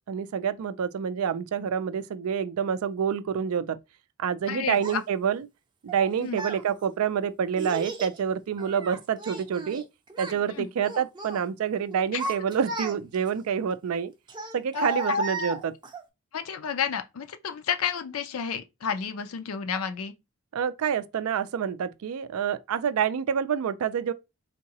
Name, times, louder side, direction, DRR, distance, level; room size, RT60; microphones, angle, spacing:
voice 1, 0.1-3.8 4.2-5.5 5.8-9.8 10.2-14.1 14.5-15.8 20.5-24.1, right 7 dB, 85° right, 0.4 m, -27 dB
voice 2, 4.5-4.8 6.2-6.4 10.5-10.7 12.1-12.2 14.7-15.2 16.3-20.1, left 7 dB, 80° left, 0.5 m, -31 dB
Child speech kid speaking, 4.8-5.0 5.9-6.6 7.6-8.2 8.6-9.8 10.1-10.4 10.8-11.4 11.9-13.3 14.3-16.0, right 1 dB, 20° right, 0.5 m, -33 dB
3.6 x 2.8 x 2.9 m
head